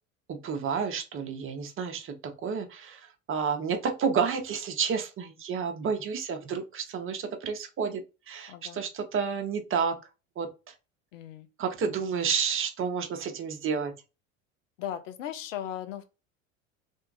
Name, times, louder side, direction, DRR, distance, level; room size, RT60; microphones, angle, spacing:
voice 1, 0.3-10.0 10.4-10.5 11.6-13.9, right 6 dB, 30° right, 1.0 m, -30 dB
voice 2, 8.5-8.8 11.1-11.5 14.8-16.0, left 10 dB, 65° left, 0.8 m, -37 dB
3.6 x 2.8 x 3.9 m
figure-of-eight pair, 75°, 41 cm